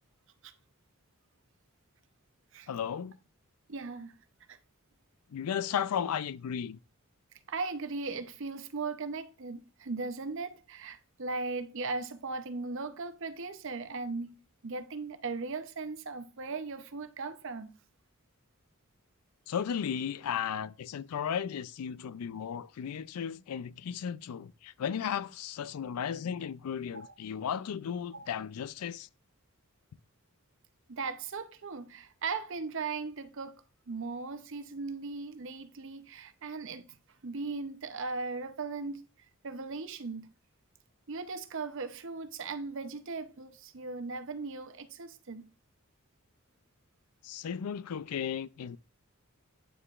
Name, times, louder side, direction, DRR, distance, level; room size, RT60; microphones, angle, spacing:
voice 1, 2.7-3.2 5.3-6.8 19.5-29.1 47.2-48.8, left 8 dB, 90° left, 0.4 m, -35 dB
voice 2, 3.7-4.1 4.5-4.6 7.5-17.7 26.9-27.1 28.1-28.3 30.9-33.6 33.9-37.0 37.2-39.1 39.4-40.3 41.1-45.5, right 4 dB, 60° right, 0.7 m, -38 dB
9.1 x 6.6 x 2.4 m
head